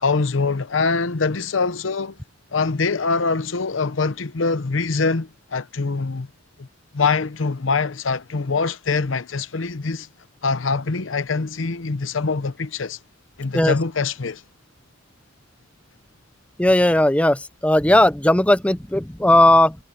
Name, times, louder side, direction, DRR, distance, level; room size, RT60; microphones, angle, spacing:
voice 1, 0.0-2.2 2.5-6.3 6.6-6.7 6.9-10.1 10.4-13.0 13.4-14.4, left 4 dB, 90° left, 0.8 m, -23 dB
voice 2, 16.6-19.8, left 1 dB, 5° left, 0.7 m, -16 dB
head